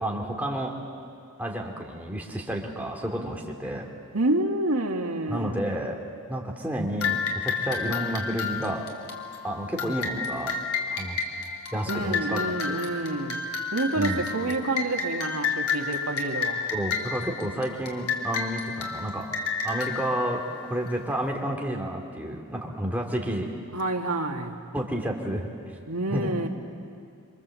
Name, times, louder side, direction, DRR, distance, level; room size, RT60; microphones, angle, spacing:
voice 1, 0.0-0.7 1.4-3.9 5.3-6.0 6.3-8.8 9.4-10.6 10.9-11.2 11.7-12.8 13.9-14.2 16.7-19.3 19.6-23.5 24.7-25.5 26.1-26.3, right 1 dB, 5° right, -1 dB, 2.6 m, -30 dB
voice 2, 4.1-5.6 11.9-13.4 13.7-16.7 23.7-24.5 25.9-26.5, right 2 dB, 80° right, 2 dB, 2.1 m, -28 dB
sound 1, 7.0-21.1, left 5 dB, 90° left, 3.0 m, -31 dB
26.0 x 25.5 x 7.7 m, 2.3 s
head